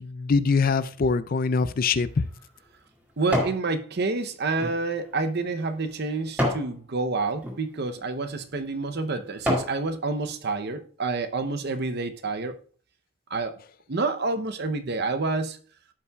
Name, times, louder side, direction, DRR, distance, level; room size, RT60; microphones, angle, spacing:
voice 1, 0.0-2.3, left 4 dB, 40° left, 0.4 m, -23 dB
sound 1, 1.8-3.6 4.1-6.7 7.3-7.6 8.3-8.4 8.9-9.8 10.3-10.4, equal, 5° right, 2.0 m, -30 dB
voice 2, 3.2-12.6 13.3-13.6 13.9-15.6, right 3 dB, 50° right, 0.7 m, -28 dB
15.0 x 5.6 x 2.3 m
head